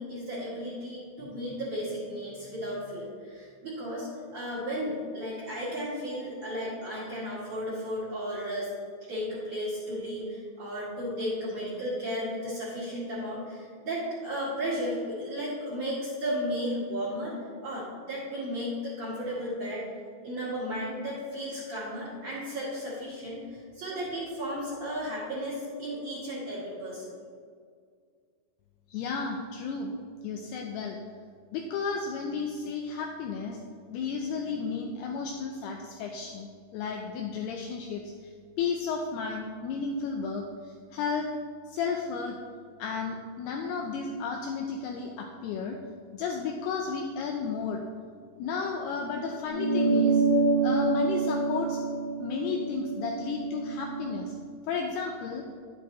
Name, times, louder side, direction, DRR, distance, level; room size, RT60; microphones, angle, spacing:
voice 1, 0.0-8.7 9.1-17.3 17.6-19.9 20.2-27.2, equal, 45° right, -9 dB, 2.7 m, -34 dB
voice 2, 28.9-30.0 30.2-31.0 31.5-33.6 33.9-38.3 38.6-41.3 41.7-42.4 42.8-45.8 46.1-47.8 48.4-50.2 50.6-51.8 52.2-54.3 54.6-55.5, left 5 dB, 85° left, 2 dB, 2.3 m, -33 dB
sound 1, 49.5-54.3, right 3 dB, 55° left, 3.2 m, -27 dB
10.5 x 8.8 x 3.1 m, 2.1 s
omnidirectional pair, 5.4 m